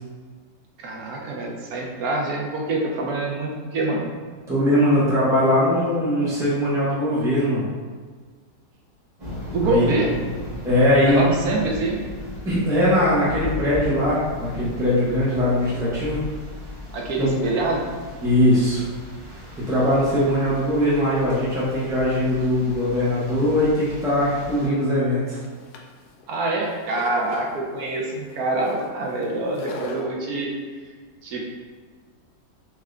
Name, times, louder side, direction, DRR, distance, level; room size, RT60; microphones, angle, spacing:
voice 1, 0.8-4.0 9.5-10.2 11.1-12.0 16.9-17.9 26.3-30.5 31.2-31.5, right 2 dB, 65° right, -1 dB, 1.0 m, -25 dB
voice 2, 4.5-7.6 9.6-9.9 10.6-11.2 12.4-16.2 17.2-17.3 18.2-18.8 19.7-25.4, left 1 dB, 5° right, -10 dB, 0.3 m, -20 dB
sound 1, 9.2-24.7, left 1 dB, 30° right, 1.0 m, -37 dB
sound 2, 24.5-30.0, left 2 dB, 70° left, 1.0 m, -39 dB
4.5 x 2.5 x 3.2 m, 1.5 s
omnidirectional pair, 1.9 m